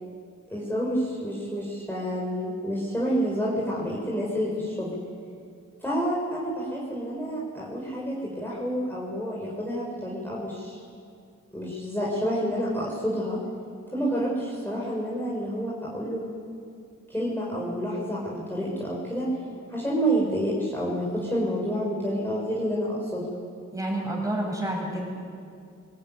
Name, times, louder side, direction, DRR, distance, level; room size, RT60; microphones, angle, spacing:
voice 1, 0.5-4.9 5.8-10.8 11.5-13.4 13.9-16.2 17.1-19.3 19.7-23.2, equal, 5° left, -6 dB, 5.4 m, -29 dB
voice 2, 23.7-25.1, right 1 dB, 10° right, -1 dB, 7.4 m, -29 dB
20.5 x 18.5 x 9.5 m, 2.3 s
cardioid pair, 80°, 31 cm